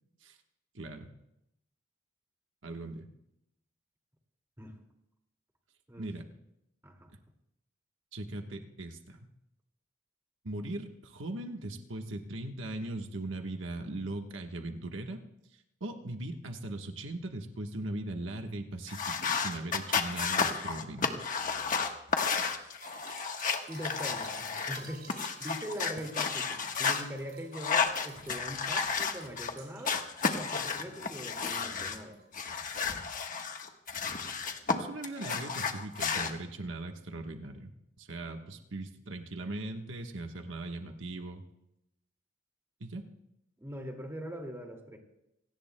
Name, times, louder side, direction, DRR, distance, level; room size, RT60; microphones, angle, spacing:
voice 1, 0.7-1.1 2.6-3.1 6.0-6.3 8.1-9.2 10.4-15.2 15.8-21.2 34.7-41.4 42.8-43.1, right 2 dB, 85° right, 4 dB, 1.3 m, -39 dB
sound 1, 18.9-24.8 25.1-27.0 27.5-29.5 29.8-32.0 32.3-34.7 35.0-36.3, left 5 dB, 45° left, 1.3 m, -32 dB
sound 2, 22.8-30.5 30.8-32.3 32.5-32.7 33.0-33.1, right 5 dB, 55° right, 5.9 m, -53 dB
voice 2, 23.7-25.1 25.4-32.2 43.6-45.0, equal, 15° right, 2 dB, 2.2 m, -42 dB
27.5 x 18.0 x 2.2 m, 0.84 s
head